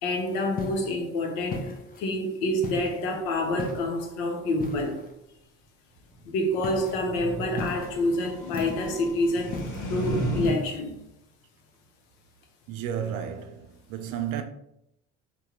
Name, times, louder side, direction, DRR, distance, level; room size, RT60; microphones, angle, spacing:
voice 1, 0.0-5.0 6.3-11.0, left 1 dB, 70° left, 0.8 m, -28 dB
sound 1, 0.6-0.9 1.5-2.1 2.6-3.0 3.6-4.0 4.6-5.1 6.6-7.0 7.6-8.0 8.5-9.0 9.5-9.9 10.4-10.8, left 3 dB, 25° left, 0.6 m, -36 dB
sound 2, 6.2-10.5, right 1 dB, 50° left, 1.2 m, -34 dB
voice 2, 12.7-14.4, right 9 dB, 60° right, 0.5 m, -32 dB
3.4 x 2.2 x 2.9 m
hypercardioid pair, 55°, 37 cm